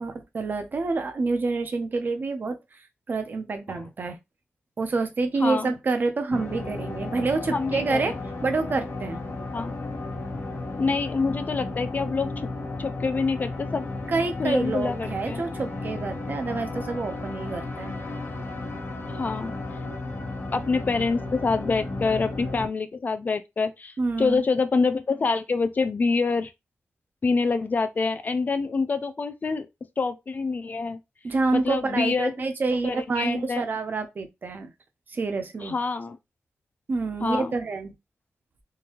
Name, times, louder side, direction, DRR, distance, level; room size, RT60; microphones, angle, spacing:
voice 1, 0.0-4.2 4.8-8.2 8.4-9.2 14.1-18.0 24.0-24.5 31.2-34.7 35.1-35.8 36.9-37.9, right 3 dB, 45° right, 0.7 m, -27 dB
voice 2, 5.4-5.7 7.5-8.1 9.5-9.7 10.8-12.3 12.8-13.9 14.4-15.4 19.1-19.5 20.5-26.5 27.2-29.7 30.0-31.0 31.5-32.3 32.7-33.7 35.6-36.2 37.2-37.5, left 4 dB, 40° left, 0.4 m, -26 dB
sound 1, 6.3-22.7, left 2 dB, 65° left, 1.3 m, -34 dB
3.8 x 2.6 x 2.9 m
wide cardioid pair, 160°, 5 cm